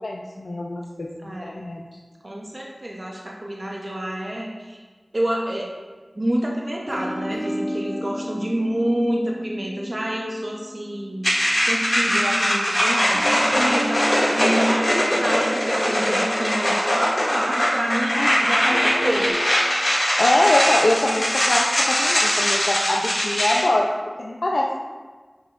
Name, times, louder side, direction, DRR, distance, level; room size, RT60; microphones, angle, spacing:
voice 1, 0.0-1.8 18.1-18.4 20.1-23.9 24.2-24.9, left 1 dB, 85° left, -2 dB, 0.5 m, -23 dB
voice 2, 1.2-1.6 2.2-4.8 5.1-5.7 6.1-11.3 11.6-19.3, right 1 dB, 40° right, -2 dB, 0.8 m, -28 dB
sound 1, 6.9-11.4 13.1-17.3 18.6-19.3, equal, 25° left, 2.2 m, -33 dB
sound 2, 11.2-23.6, equal, 40° left, 2.2 m, -21 dB
10.5 x 5.8 x 2.5 m, 1.4 s
wide cardioid pair, 60°, 0 cm